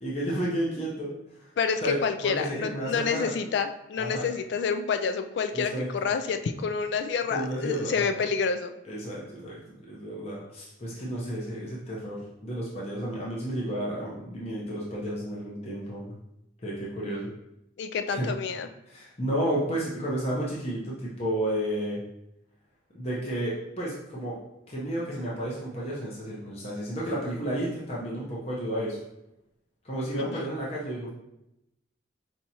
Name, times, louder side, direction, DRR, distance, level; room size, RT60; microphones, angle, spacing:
voice 1, 0.0-1.5 1.8-3.3 4.0-4.2 5.5-6.1 7.3-8.2 8.8-16.1 16.6-17.3 18.1-18.3 18.9-22.0 22.9-24.4 24.7-29.0 29.8-31.1, right 1 dB, 35° left, -6 dB, 0.8 m, -32 dB
voice 2, 1.6-8.7 17.8-18.7 30.2-30.5, left 5 dB, 65° left, 8 dB, 0.3 m, -28 dB
4.6 x 2.8 x 2.8 m, 0.85 s
head